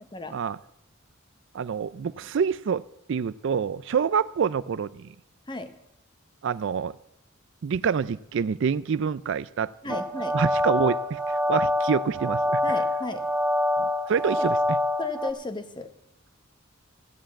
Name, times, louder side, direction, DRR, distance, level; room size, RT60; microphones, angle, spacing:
voice 1, 1.5-2.8 3.1-5.1 6.4-7.0 7.6-10.0 10.3-12.6 13.8-14.8, right 6 dB, 60° right, 17 dB, 0.4 m, -27 dB
voice 2, 9.8-10.3 12.6-13.2 15.0-15.9, left 3 dB, 20° left, 9 dB, 1.0 m, -34 dB
sound 1, 9.9-15.3, left 1 dB, 5° right, 0.7 m, -25 dB
14.0 x 7.7 x 8.2 m, 0.80 s
head